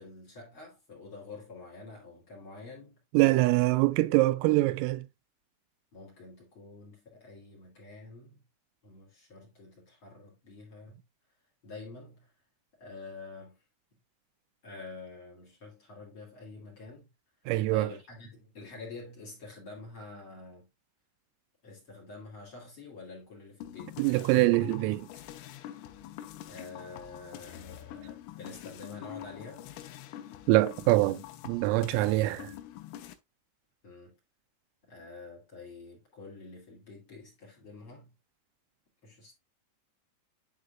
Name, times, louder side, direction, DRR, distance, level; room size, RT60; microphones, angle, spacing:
voice 1, 0.0-3.6 5.9-8.4 8.8-11.0 11.6-12.3 12.8-13.6 14.6-17.1 17.7-20.7 21.6-24.0 26.5-29.7 33.8-34.2 34.8-38.1 39.0-39.3, left 3 dB, 35° left, 2.6 m, -47 dB
voice 2, 3.1-5.0 17.5-17.9 24.0-25.1 30.5-31.2 31.5-32.5, right 19 dB, 85° right, 3.2 m, -24 dB
sound 1, 23.6-33.1, left 12 dB, 85° left, 3.3 m, -45 dB
10.0 x 4.8 x 2.5 m
omnidirectional pair, 5.9 m